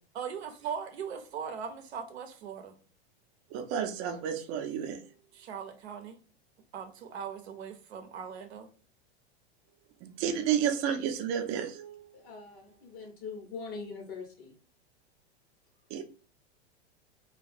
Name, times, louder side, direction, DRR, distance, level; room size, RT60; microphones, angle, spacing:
voice 1, 0.1-2.8 5.3-6.2 6.7-8.7, right 7 dB, 80° right, 5 dB, 0.6 m, -39 dB
voice 2, 3.5-5.0 10.0-12.1 15.9-16.0, right 8 dB, 40° right, 6 dB, 0.5 m, -31 dB
voice 3, 12.1-14.5, left 4 dB, 55° left, 1 dB, 1.0 m, -42 dB
2.3 x 2.3 x 2.5 m, 0.40 s
hypercardioid pair, 105°, 32 cm